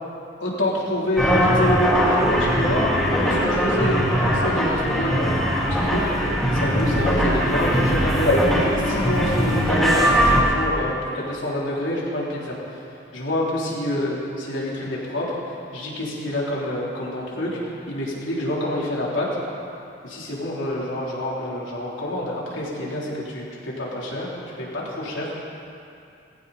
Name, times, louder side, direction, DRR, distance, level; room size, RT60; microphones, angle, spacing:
voice 1, 0.4-2.9 3.2-12.6 13.1-17.5 17.9-19.3 20.0-24.3 24.6-25.3, left 1 dB, 80° left, -5 dB, 3.7 m, -27 dB
sound 1, 1.2-10.4, equal, ahead, 3.4 m, -20 dB
20.0 x 16.0 x 4.3 m, 2.6 s
head